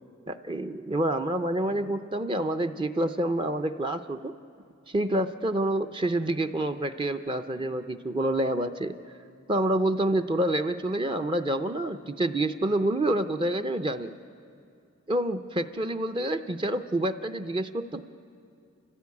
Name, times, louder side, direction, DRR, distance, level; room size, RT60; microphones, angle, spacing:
voice 1, 0.3-4.3 4.9-9.0 9.5-14.1 15.1-18.1, right 1 dB, 25° right, 7 dB, 0.5 m, -28 dB
29.5 x 15.0 x 8.4 m, 2.5 s
head